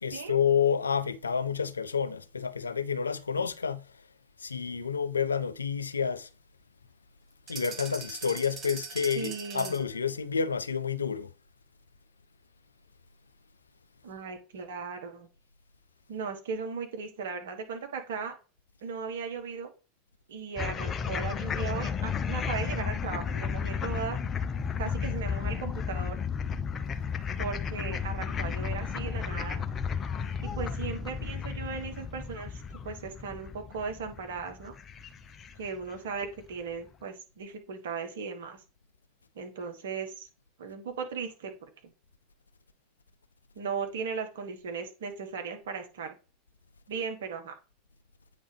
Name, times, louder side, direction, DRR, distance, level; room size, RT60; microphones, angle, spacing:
voice 1, 0.0-3.8 4.4-6.3 7.5-11.3, left 6 dB, 80° left, 0.4 m, -29 dB
sound 1, 7.5-10.0, right 5 dB, 35° right, 1.3 m, -41 dB
voice 2, 9.2-9.8 14.0-15.3 16.1-18.4 18.8-19.7 20.3-24.2 24.8-26.2 27.4-29.6 30.4-34.7 35.6-38.6 39.3-40.3 40.6-41.9 43.5-46.2 46.9-47.5, right 5 dB, 65° right, 1.3 m, -37 dB
sound 2, 20.6-35.9, left 6 dB, 30° left, 0.6 m, -33 dB
8.6 x 3.4 x 3.4 m
figure-of-eight pair, 80°, 0 cm